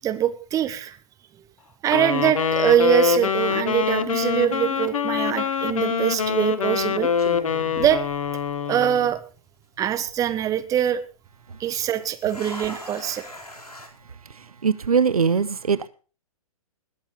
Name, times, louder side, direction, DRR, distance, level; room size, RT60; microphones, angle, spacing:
voice 1, 0.0-1.0 1.8-7.1 7.7-8.0 8.7-9.2 9.8-11.0 11.6-13.2, right 10 dB, 20° right, 1.2 m, -23 dB
Wind instrument woodwind instrument, 1.8-9.1, left 6 dB, 60° left, 1.2 m, -24 dB
sound 1, 5.6-5.9 6.7-6.8 7.2-8.8 9.0-9.1 9.8-10.1 11.9-13.9, left 1 dB, 80° left, 4.5 m, -39 dB
voice 2, 14.4-15.9, right 6 dB, 75° right, 0.8 m, -22 dB
20.5 x 7.2 x 5.2 m
figure-of-eight pair, 115°, 19 cm